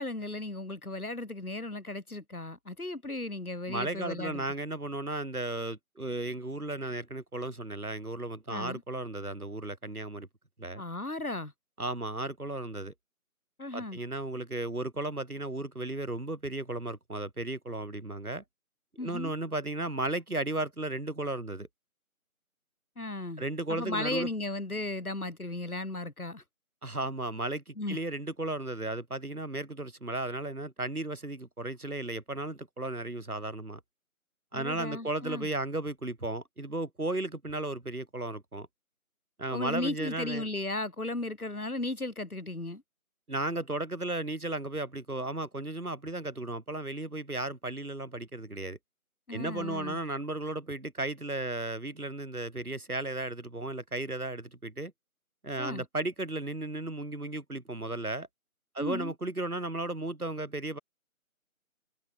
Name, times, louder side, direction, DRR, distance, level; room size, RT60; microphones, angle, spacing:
voice 1, 0.0-4.5 8.5-8.8 10.7-11.5 13.6-14.0 19.0-19.3 23.0-23.4 23.7-26.4 27.8-28.0 34.5-35.5 39.5-42.8 49.3-50.0 55.6-55.8 58.8-59.1, left 2 dB, 80° left, 6.7 m, -35 dB
voice 2, 3.7-10.3 10.6-10.8 11.8-12.9 13.7-18.4 19.0-21.7 23.4-24.3 26.8-33.8 34.5-38.7 39.4-40.5 43.3-48.8 49.3-54.9 55.4-58.3 58.7-60.8, right 2 dB, 85° right, 7.4 m, -35 dB
figure-of-eight pair, 175°, 43 cm